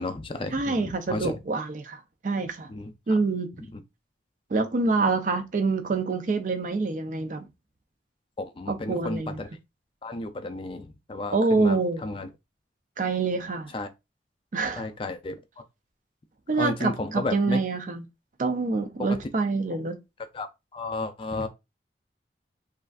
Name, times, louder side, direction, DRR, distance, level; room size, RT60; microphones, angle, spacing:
voice 1, 0.0-1.4 2.7-3.2 8.4-9.5 10.0-12.3 13.7-13.9 14.8-15.6 16.6-17.6 19.0-19.2 20.3-20.5 20.7-21.5, left 2 dB, 30° left, 0.4 m, -33 dB
voice 2, 0.5-2.7 3.1-3.5 4.5-7.5 8.7-9.4 11.3-12.0 13.0-13.7 14.5-14.9 16.5-18.0 18.4-20.0, right 3 dB, 45° right, 0.4 m, -26 dB
3.2 x 2.5 x 2.3 m
head